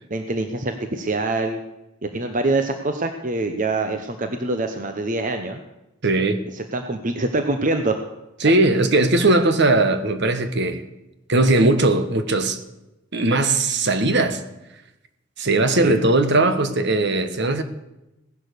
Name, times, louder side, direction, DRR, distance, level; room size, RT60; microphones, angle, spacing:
voice 1, 0.1-1.6 2.0-5.6 6.5-8.0 15.8-16.0, right 2 dB, 40° right, 6 dB, 0.9 m, -24 dB
voice 2, 6.0-6.4 8.4-10.8 11.3-12.6 13.1-14.4 15.4-17.6, right 2 dB, 55° right, 9 dB, 1.3 m, -19 dB
17.0 x 11.0 x 6.8 m, 0.95 s
head